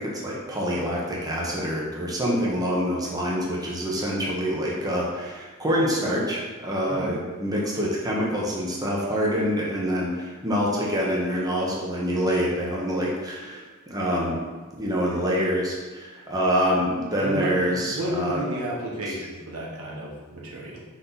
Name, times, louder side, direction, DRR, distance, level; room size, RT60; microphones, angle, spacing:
voice 1, 0.0-14.4 14.8-18.4 19.0-19.1, equal, 15° right, -4 dB, 1.0 m, -26 dB
voice 2, 17.2-20.8, equal, 90° right, -4 dB, 1.4 m, -32 dB
5.5 x 4.3 x 4.0 m, 1.3 s
head